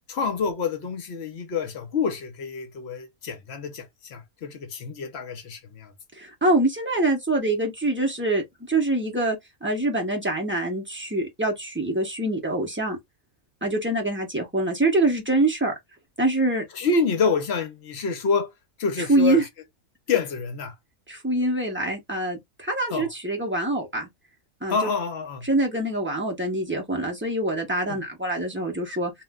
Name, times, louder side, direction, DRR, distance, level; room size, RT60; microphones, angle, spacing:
voice 1, 0.1-5.9 16.8-18.5 18.8-19.4 20.1-20.7 22.9-23.1 24.7-25.5 27.9-28.0, left 5 dB, 60° left, 0.8 m, -27 dB
voice 2, 6.1-13.0 13.6-15.7 16.2-16.6 19.0-19.4 21.1-24.1 24.6-24.9 25.4-29.1, right 2 dB, 15° right, 0.4 m, -25 dB
2.4 x 2.1 x 3.4 m
omnidirectional pair, 1.5 m